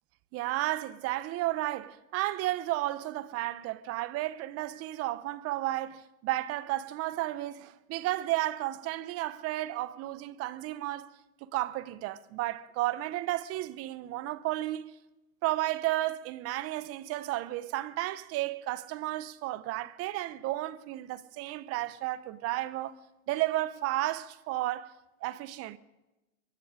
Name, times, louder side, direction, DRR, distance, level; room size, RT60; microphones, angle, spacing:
voice 1, 0.3-11.1 11.4-15.0 15.4-23.0 23.3-24.9 25.2-25.8, right 16 dB, 35° right, 0.8 m, -33 dB
23.5 x 11.0 x 5.0 m
hypercardioid pair, 125°, 44 cm